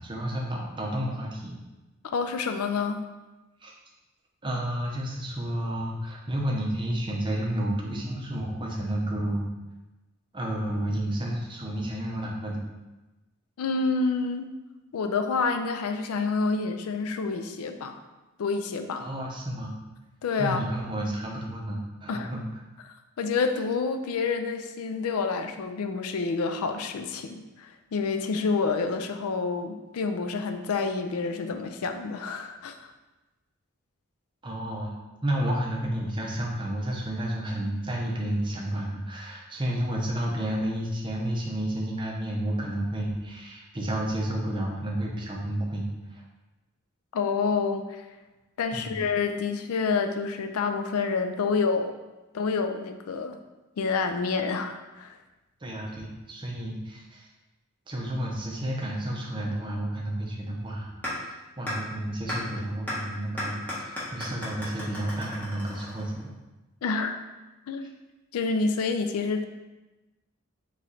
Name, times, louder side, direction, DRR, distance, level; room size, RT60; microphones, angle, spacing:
voice 1, 0.0-1.5 3.6-3.7 4.4-9.5 10.3-12.7 19.0-19.8 20.4-22.4 34.4-34.9 35.2-46.2 48.7-49.0 55.6-57.3 57.9-66.3, right 1 dB, 20° right, -1 dB, 0.6 m, -31 dB
voice 2, 2.0-3.1 13.6-14.5 14.9-18.0 18.4-19.1 20.2-20.6 22.1-22.3 23.2-32.9 47.1-48.1 48.6-52.0 52.3-53.4 53.8-55.2 66.8-67.1 67.7-67.9 68.3-69.4, left 4 dB, 80° left, 7 dB, 0.4 m, -28 dB
sound 1, 61.0-61.1 61.7-61.8 62.3-62.4 62.9-63.0 63.4-66.3, left 1 dB, 10° left, 1.1 m, -34 dB
4.2 x 3.1 x 3.8 m, 1.1 s
head